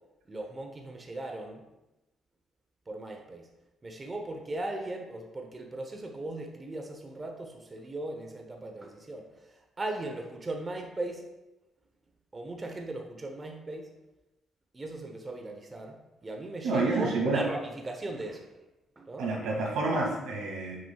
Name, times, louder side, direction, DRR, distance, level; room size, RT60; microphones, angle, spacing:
voice 1, 0.3-1.7 2.9-3.5 3.8-11.3 12.3-13.9 14.7-18.5 19.0-19.3, right 2 dB, 25° right, 2 dB, 0.9 m, -38 dB
voice 2, 16.6-17.4 19.2-20.8, right 3 dB, 90° right, -2 dB, 2.1 m, -28 dB
9.8 x 6.3 x 2.4 m, 0.99 s
cardioid pair, 90°, 0 cm